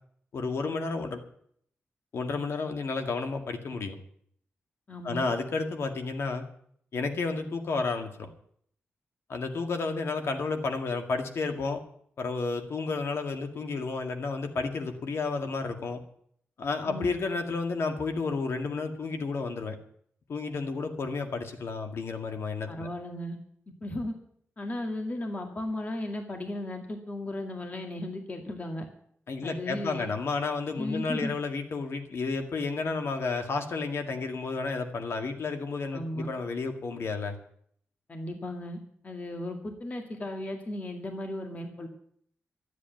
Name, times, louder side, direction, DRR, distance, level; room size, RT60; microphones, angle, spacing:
voice 1, 0.3-1.2 2.1-4.0 5.0-6.5 6.9-8.3 9.3-11.8 12.2-16.0 16.6-19.8 20.3-22.9 29.3-37.4, left 4 dB, 70° left, 6 dB, 2.0 m, -31 dB
voice 2, 4.9-5.2 16.9-17.0 22.7-23.4 23.8-24.1 24.6-28.9 29.4-30.1 30.8-31.3 35.9-36.3 38.1-38.8 39.0-41.9, left 1 dB, 35° left, 4 dB, 2.1 m, -35 dB
12.5 x 8.5 x 9.2 m, 0.65 s
wide cardioid pair, 110°, 5 cm